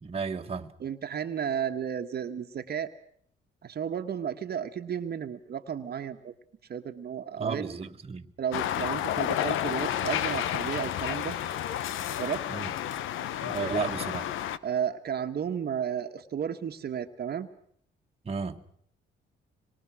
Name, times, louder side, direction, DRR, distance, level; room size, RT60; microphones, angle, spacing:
voice 1, 0.0-0.7 7.4-8.3 12.5-12.7 13.4-14.3 18.2-18.8, right 5 dB, 30° right, 1.6 m, -33 dB
voice 2, 0.8-2.9 3.6-6.3 6.7-7.7 8.4-11.4 12.2-12.4 14.6-17.5, right 8 dB, 55° right, 1.5 m, -33 dB
sound 1, 8.5-14.6, left 11 dB, 85° left, 1.0 m, -31 dB
26.0 x 22.5 x 6.2 m
cardioid pair, 90°, 20 cm